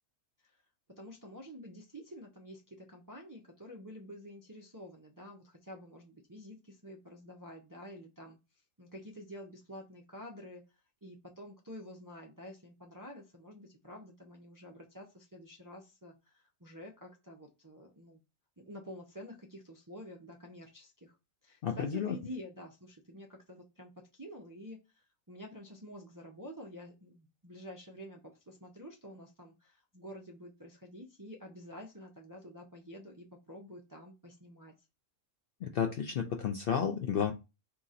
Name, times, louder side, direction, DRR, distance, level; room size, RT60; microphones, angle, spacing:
voice 1, 1.0-8.4 8.8-18.2 18.6-21.2 21.4-34.7, equal, 25° right, -1 dB, 0.4 m, -49 dB
voice 2, 21.6-22.2 35.6-37.3, left 7 dB, 65° left, 4 dB, 0.6 m, -32 dB
3.6 x 2.9 x 4.0 m, 0.26 s
omnidirectional pair, 1.4 m